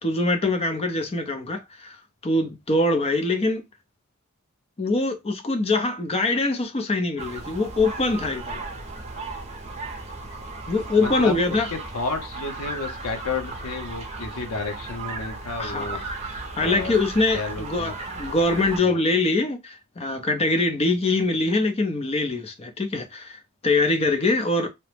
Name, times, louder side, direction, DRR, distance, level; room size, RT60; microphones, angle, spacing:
voice 1, 0.0-2.0 2.2-3.6 4.8-8.6 10.7-11.7 15.6-24.7, left 2 dB, 30° left, 0.5 m, -23 dB
sound 1, 7.2-18.8, right 3 dB, 30° right, 0.6 m, -35 dB
voice 2, 11.0-16.0 16.6-17.0 17.3-17.9 18.8-19.0, left 3 dB, 85° left, 0.7 m, -32 dB
2.9 x 2.0 x 3.2 m
head